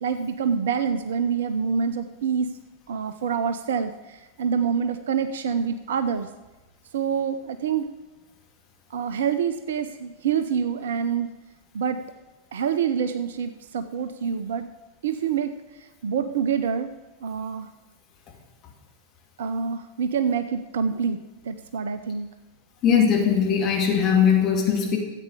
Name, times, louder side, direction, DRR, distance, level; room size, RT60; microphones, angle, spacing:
voice 1, 0.0-2.5 2.9-6.3 6.9-7.9 8.9-11.3 11.7-12.0 12.5-14.7 15.0-16.9 17.2-17.7 19.4-22.3, right 7 dB, 60° right, 11 dB, 0.6 m, -26 dB
voice 2, 22.8-25.0, left 7 dB, 35° left, -1 dB, 2.7 m, -20 dB
13.5 x 8.5 x 5.0 m, 1.2 s
figure-of-eight pair, 90°, 0 cm